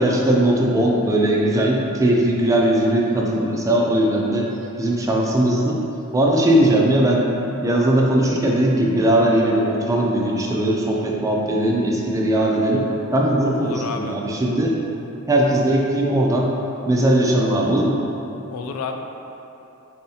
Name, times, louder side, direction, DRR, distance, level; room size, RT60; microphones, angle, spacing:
voice 1, 0.0-4.5 4.8-5.8 6.1-7.3 7.6-12.8 13.1-14.8 15.3-16.5 16.9-18.0, right 1 dB, 15° right, -2 dB, 0.4 m, -19 dB
voice 2, 13.5-14.2 18.5-19.0, left 4 dB, 85° left, 4 dB, 0.4 m, -30 dB
4.1 x 3.8 x 2.8 m, 2.9 s
head